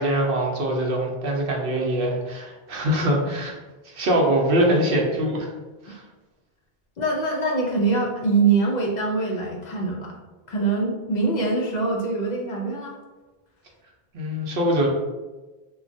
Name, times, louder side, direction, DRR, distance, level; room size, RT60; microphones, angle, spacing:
voice 1, 0.0-3.5 3.8-5.5 5.8-6.0 14.1-14.9, right 1 dB, 65° right, -1 dB, 0.8 m, -23 dB
voice 2, 7.0-10.1 10.5-13.0, right 3 dB, 55° left, -1 dB, 0.5 m, -23 dB
3.0 x 2.2 x 2.5 m, 1.2 s
omnidirectional pair, 1.1 m